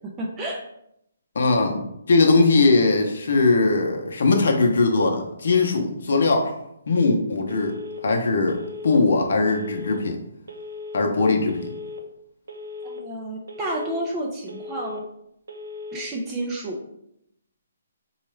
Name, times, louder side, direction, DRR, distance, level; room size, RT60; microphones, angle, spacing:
voice 1, 0.2-0.6 12.8-15.0 15.9-16.8, right 1 dB, 15° right, -1 dB, 0.4 m, -30 dB
voice 2, 1.3-6.5 6.9-7.7 8.0-10.2 10.9-11.7, left 3 dB, 55° left, 2 dB, 0.7 m, -20 dB
Telephone, 7.5-8.0 8.5-9.0 9.5-10.0 10.5-11.0 11.5-12.0 12.5-13.0 13.5-14.0 14.5-15.0 15.5-16.0, left 3 dB, 75° right, 0.6 m, -37 dB
4.1 x 2.3 x 3.2 m, 0.77 s
hypercardioid pair, 175°, 0 cm